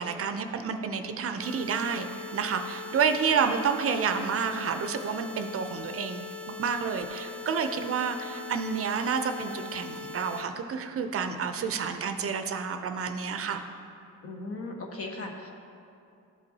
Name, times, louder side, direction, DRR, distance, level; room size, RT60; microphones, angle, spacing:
voice 1, 0.0-2.1 2.3-6.2 6.6-13.6, right 6 dB, 50° right, 7 dB, 0.5 m, -29 dB
sound 1, 1.4-10.4, left 4 dB, 5° left, 0.6 m, -41 dB
voice 2, 14.2-15.5, left 2 dB, 50° left, 2 dB, 1.2 m, -37 dB
13.0 x 5.2 x 2.8 m, 2.5 s
cardioid pair, 90°, 30 cm